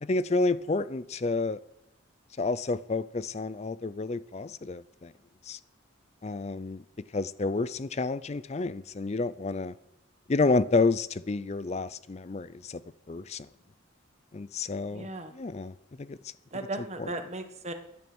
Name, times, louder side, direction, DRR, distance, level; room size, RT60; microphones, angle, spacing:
voice 1, 0.0-1.6 2.4-5.1 5.5-5.6 6.2-6.8 7.1-9.7 10.3-12.8 13.1-13.5 14.3-15.1 15.3-15.7 16.0-16.2 17.0-17.1, left 3 dB, 30° left, 0.4 m, -29 dB
voice 2, 14.9-15.3 16.5-17.7, right 2 dB, 35° right, 1.4 m, -36 dB
16.0 x 11.0 x 6.2 m
head